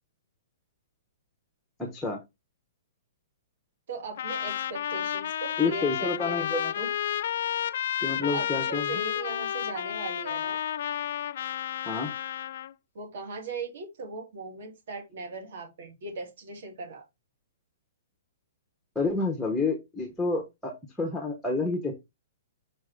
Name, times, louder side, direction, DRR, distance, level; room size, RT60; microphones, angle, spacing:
voice 1, 1.8-2.2 5.6-6.9 8.0-9.0 11.9-12.1 18.9-21.9, left 3 dB, ahead, 0.9 m, -29 dB
voice 2, 3.9-6.4 8.2-10.6 12.9-17.0, right 3 dB, 55° right, 2.8 m, -39 dB
Trumpet, 4.2-12.7, left 10 dB, 50° left, 0.3 m, -31 dB
5.8 x 5.3 x 3.5 m
hypercardioid pair, 180°, 0 cm